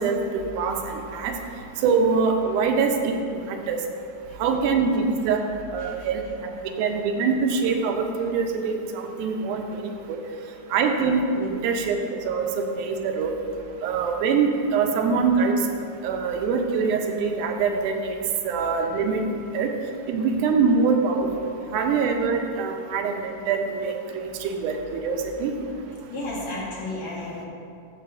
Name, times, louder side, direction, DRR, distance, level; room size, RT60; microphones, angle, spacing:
voice 1, 0.0-1.3 1.8-3.8 4.4-5.4 5.7-6.5 6.8-10.2 10.7-12.5 12.8-13.3 13.8-15.5 16.0-18.2 18.4-19.2 19.5-19.7 20.1-25.5, right 5 dB, 85° right, 3 dB, 2.2 m, -24 dB
voice 2, 5.8-6.3 6.7-6.8 26.1-27.5, left 2 dB, 65° left, -6 dB, 2.8 m, -34 dB
13.0 x 6.8 x 2.5 m, 2.5 s
omnidirectional pair, 3.5 m